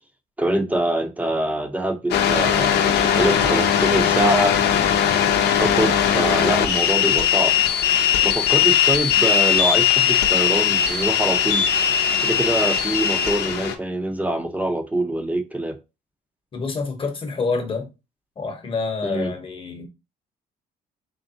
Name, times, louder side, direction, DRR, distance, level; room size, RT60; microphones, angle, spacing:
voice 1, 0.4-4.6 5.6-7.5 8.2-11.7 12.2-15.8 19.0-19.3, right 1 dB, 10° right, 0.6 m, -24 dB
sound 1, 2.1-13.8, left 9 dB, 80° left, 0.6 m, -19 dB
voice 2, 16.5-17.9 18.4-19.9, left 4 dB, 30° left, 1.0 m, -27 dB
3.8 x 3.3 x 2.7 m
cardioid pair, 130°, 17 cm